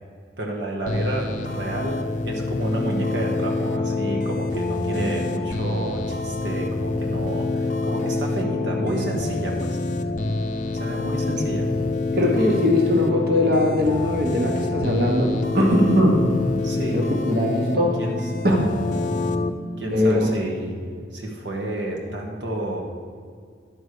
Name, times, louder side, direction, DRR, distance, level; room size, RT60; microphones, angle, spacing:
voice 1, 0.4-9.8 10.7-11.7 16.6-17.0 18.0-18.2 19.8-20.8 21.1-22.8, right 1 dB, 80° right, -1 dB, 1.3 m, -30 dB
sound 1, 0.9-19.5, left 3 dB, 40° left, 0.5 m, -26 dB
voice 2, 12.2-16.2 16.9-18.0 18.4-18.7 19.9-20.3, left 1 dB, 55° right, 0 dB, 1.3 m, -20 dB
10.5 x 4.8 x 6.7 m, 2.1 s
head